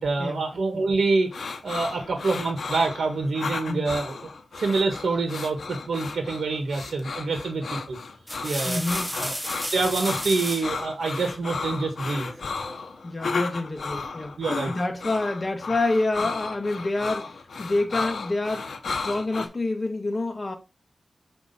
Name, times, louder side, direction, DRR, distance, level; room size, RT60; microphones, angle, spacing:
voice 1, 0.0-4.2 4.5-8.0 8.4-8.8 9.2-9.4 9.7-12.3 14.4-14.7, right 3 dB, 80° right, 1.4 m, -26 dB
sound 1, 1.3-19.5, left 4 dB, 75° left, 0.8 m, -34 dB
sound 2, 7.1-7.4 8.0-10.8 12.2-12.9, equal, ahead, 0.9 m, -33 dB
voice 2, 8.6-9.2 13.0-14.3 14.7-20.6, left 2 dB, 35° left, 1.4 m, -28 dB
6.2 x 4.3 x 4.1 m
wide cardioid pair, 90°, 0 cm